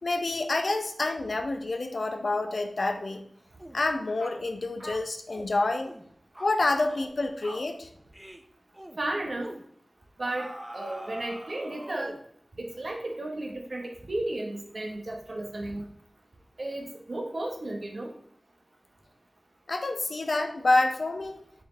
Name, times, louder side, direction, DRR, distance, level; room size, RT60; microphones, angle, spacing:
voice 1, 0.0-3.2 3.7-5.9 6.4-7.9 19.7-21.4, left 2 dB, 75° left, 5 dB, 0.8 m, -28 dB
sound 1, 3.6-3.8 4.2-4.4 4.8-5.5 5.8-6.1 6.3-6.6 6.9-7.2 7.4-7.7 8.1-8.4 8.7-9.0 9.4-9.6 10.2-12.3, right 1 dB, 15° right, 0.7 m, -43 dB
voice 2, 9.0-9.5 10.2-10.5 10.7-12.2 12.6-15.9 16.6-18.1, right 1 dB, 65° right, 1 dB, 1.4 m, -33 dB
6.4 x 4.5 x 3.4 m, 0.66 s
wide cardioid pair, 45°, 0 cm